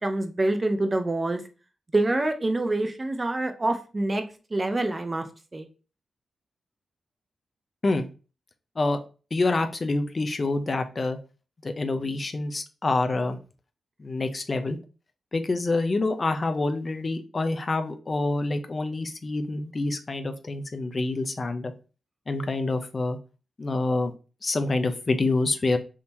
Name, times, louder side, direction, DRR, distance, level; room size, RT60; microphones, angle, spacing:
voice 1, 0.0-1.4 1.9-4.2 4.5-5.2 5.5-5.7, right 2 dB, 20° right, 6 dB, 0.5 m, -26 dB
voice 2, 9.3-11.2 11.6-13.4 14.0-14.8 15.3-21.7 22.3-23.2 23.6-24.1 24.4-25.8, left 2 dB, 30° left, 7 dB, 0.5 m, -27 dB
3.6 x 2.8 x 4.2 m, 0.35 s
wide cardioid pair, 150°, 0 cm